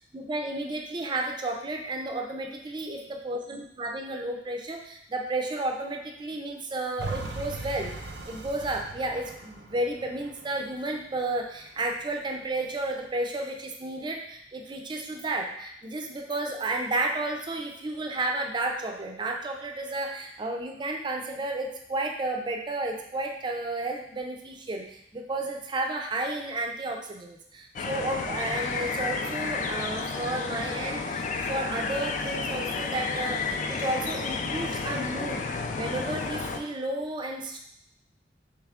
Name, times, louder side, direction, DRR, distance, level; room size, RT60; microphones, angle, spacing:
voice 1, 0.1-3.0 3.2-7.9 8.3-35.5 35.8-37.6, right 2 dB, 25° right, 2 dB, 0.4 m, -32 dB
sound 1, 7.0-12.0 12.5-12.6, right 2 dB, 75° right, 0.6 m, -39 dB
sound 2, 27.8-36.6, left 4 dB, 45° left, 0.3 m, -31 dB
3.5 x 3.1 x 3.5 m, 0.73 s
head